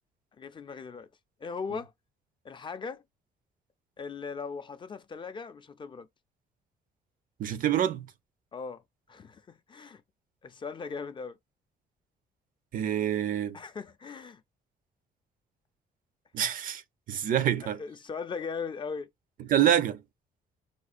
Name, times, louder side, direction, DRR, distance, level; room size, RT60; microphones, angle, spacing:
voice 1, 0.4-1.1 1.4-1.9 2.4-3.0 4.0-6.1 8.5-8.8 9.1-10.0 10.4-11.4 13.5-14.4 17.6-19.1, left 5 dB, 30° left, 0.4 m, -39 dB
voice 2, 7.4-8.1 12.7-13.6 16.3-16.8 17.1-17.8 19.5-20.0, right 10 dB, 60° right, 0.5 m, -26 dB
5.0 x 2.2 x 2.5 m
cardioid pair, 115°, 16 cm